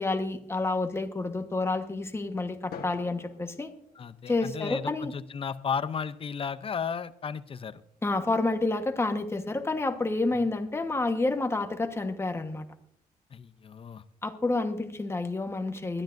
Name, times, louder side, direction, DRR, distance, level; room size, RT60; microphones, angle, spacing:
voice 1, 0.0-3.7 4.3-5.1 8.0-12.6 14.2-16.0, left 2 dB, 15° left, 7 dB, 1.2 m, -29 dB
Drum, 2.7-5.0, left 6 dB, 85° left, 1.7 m, -47 dB
voice 2, 3.9-7.8 10.3-10.4 13.3-14.0, left 6 dB, 35° left, 13 dB, 0.6 m, -34 dB
21.0 x 13.0 x 2.6 m, 0.68 s
wide cardioid pair, 150°, 15 cm